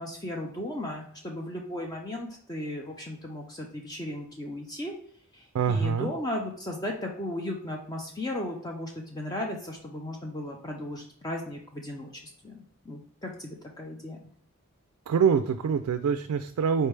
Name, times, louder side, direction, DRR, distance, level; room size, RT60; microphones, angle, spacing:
voice 1, 0.0-4.9 5.3-14.2, left 1 dB, 15° left, 0 dB, 0.5 m, -36 dB
voice 2, 5.5-6.1 15.1-16.9, right 6 dB, 80° right, 9 dB, 0.3 m, -25 dB
4.3 x 3.3 x 3.1 m, 0.64 s
head